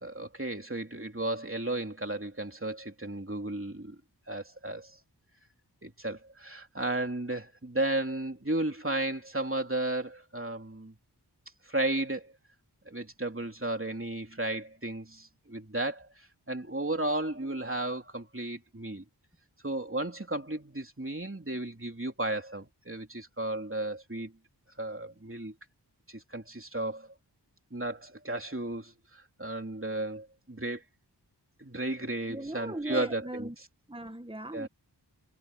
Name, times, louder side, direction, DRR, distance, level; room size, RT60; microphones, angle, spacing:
voice 1, 0.0-4.0 4.3-5.0 5.8-10.9 11.7-12.3 12.9-16.1 16.5-19.0 19.6-24.3 24.8-25.5 26.1-27.1 27.7-30.8 31.6-33.5 34.5-34.7, right 2 dB, 30° right, 3.2 m, -34 dB
voice 2, 32.3-33.6 33.9-34.7, right 1 dB, 15° right, 1.9 m, -38 dB
wide cardioid pair, 45°, 41 cm